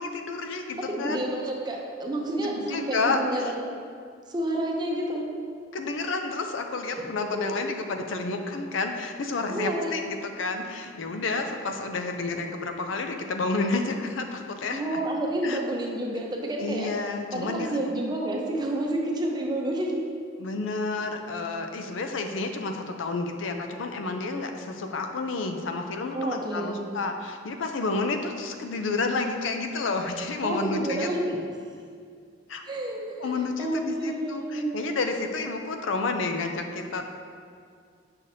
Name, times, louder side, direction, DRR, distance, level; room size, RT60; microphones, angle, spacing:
voice 1, 0.0-1.2 2.4-3.5 5.7-15.0 15.4-15.6 16.6-17.9 20.4-31.1 32.5-32.6 33.2-37.1, left 3 dB, 85° left, 5 dB, 0.5 m, -30 dB
voice 2, 0.9-3.6 4.3-5.3 6.9-7.1 9.5-9.9 14.7-16.9 17.3-20.1 26.1-26.9 30.4-31.4 32.7-34.8, right 1 dB, 20° right, -1 dB, 0.6 m, -29 dB
6.4 x 5.8 x 2.7 m, 2.2 s
head